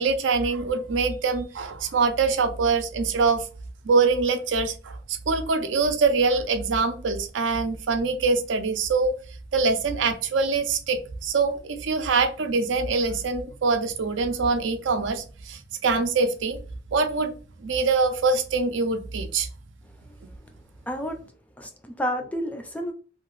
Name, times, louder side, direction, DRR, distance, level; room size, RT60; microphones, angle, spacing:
voice 1, 0.0-3.4 3.8-9.1 9.5-16.6 16.9-17.3 17.6-19.5, right 4 dB, 85° right, 0.5 m, -24 dB
voice 2, 20.9-21.2 21.6-22.9, equal, 10° left, 0.4 m, -30 dB
2.8 x 2.4 x 3.0 m
head